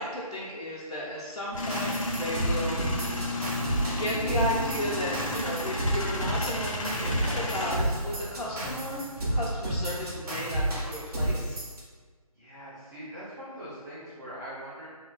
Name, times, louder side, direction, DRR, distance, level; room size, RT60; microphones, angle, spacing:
voice 1, 0.0-2.8 3.1-3.3 3.9-11.6, equal, 85° left, -8 dB, 0.8 m, -34 dB
sound 1, 1.5-10.3, right 1 dB, 50° right, 1.5 m, -42 dB
Male speech man speaking / Vehicle / Engine starting, 1.6-7.8, left 1 dB, 55° left, 0.5 m, -33 dB
sound 2, 1.7-11.8, right 1 dB, 70° right, 1.1 m, -31 dB
voice 2, 12.3-14.9, equal, 25° right, -12 dB, 0.5 m, -42 dB
3.0 x 2.9 x 2.3 m, 1.5 s
figure-of-eight pair, 165°, 20 cm